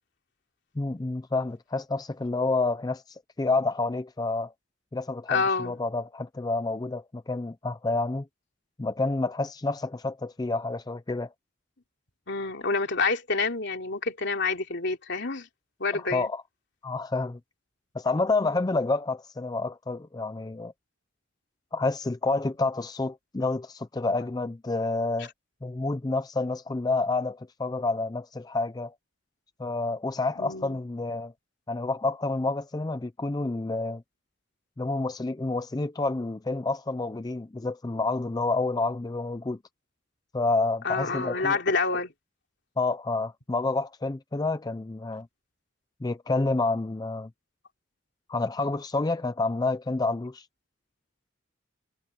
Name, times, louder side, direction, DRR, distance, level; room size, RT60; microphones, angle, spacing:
voice 1, 0.8-4.5 4.9-8.3 8.8-11.3 16.1-16.4 16.8-17.4 17.9-20.7 21.7-25.3 25.6-28.9 29.6-31.3 31.7-34.0 34.8-39.6 40.3-41.6 42.8-45.3 46.0-47.3 48.3-50.5, left 3 dB, 20° left, 0.4 m, -29 dB
voice 2, 5.3-5.8 12.3-15.5 15.8-16.3 25.2-25.3 30.4-30.8 40.8-42.1, left 4 dB, 60° left, 3.1 m, -28 dB
head